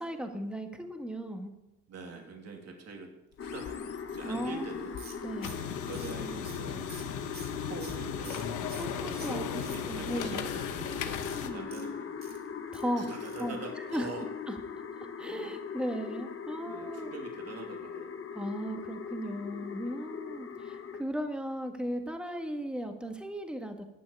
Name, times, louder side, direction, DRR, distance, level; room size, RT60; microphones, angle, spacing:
voice 1, 0.0-1.5 4.2-4.7 5.2-5.5 8.7-9.6 9.9-10.5 10.9-11.6 12.7-13.1 13.4-14.1 14.5-14.6 15.2-17.1 18.3-23.8, equal, 5° right, 4 dB, 1.6 m, -36 dB
voice 2, 1.9-3.1 3.4-5.0 5.9-7.0 7.6-8.4 9.2-11.2 11.5-12.1 13.0-14.2 16.7-18.1, right 4 dB, 55° right, 2 dB, 2.7 m, -44 dB
sound 1, 3.3-11.5, left 8 dB, 85° left, 1.2 m, -39 dB
sound 2, 3.4-21.0, left 6 dB, 45° left, 1.3 m, -40 dB
sound 3, 5.0-8.9 9.2-10.2 11.1-12.9 13.2-13.6 13.8-13.9 14.2-14.3, right 3 dB, 30° right, 2.8 m, -49 dB
12.0 x 6.2 x 8.7 m, 0.92 s
cardioid pair, 90°, 30 cm